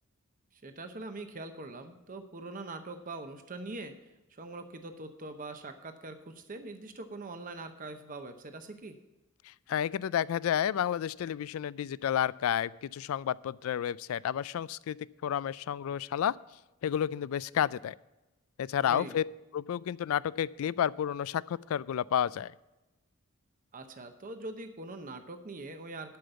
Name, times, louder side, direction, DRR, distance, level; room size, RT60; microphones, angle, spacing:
voice 1, 0.6-3.9 4.4-9.0 18.8-19.1 23.7-26.2, right 2 dB, 40° right, 7 dB, 0.8 m, -43 dB
voice 2, 9.5-15.0 15.2-16.4 16.8-18.0 18.6-19.2 19.5-22.5, left 9 dB, 70° left, 21 dB, 0.3 m, -31 dB
11.5 x 5.2 x 7.9 m, 1.0 s
head